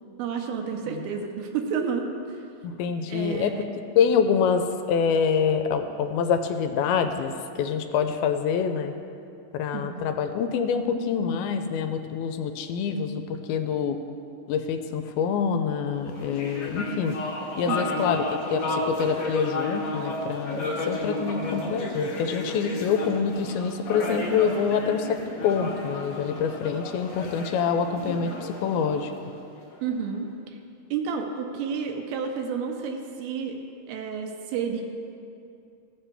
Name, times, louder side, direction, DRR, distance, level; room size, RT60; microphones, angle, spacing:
voice 1, 0.2-2.5 3.1-3.6 9.7-10.1 17.7-18.1 29.8-30.6 30.9-33.6 33.9-34.8, right 6 dB, 85° right, 3 dB, 2.7 m, -31 dB
voice 2, 2.6-3.5 4.0-8.9 9.5-14.0 14.5-17.2 17.6-29.1, left 6 dB, 85° left, 7 dB, 2.4 m, -26 dB
sound 1, 16.0-29.7, left 2 dB, 55° left, 1.7 m, -32 dB
15.5 x 7.4 x 3.4 m, 2.5 s
omnidirectional pair, 4.4 m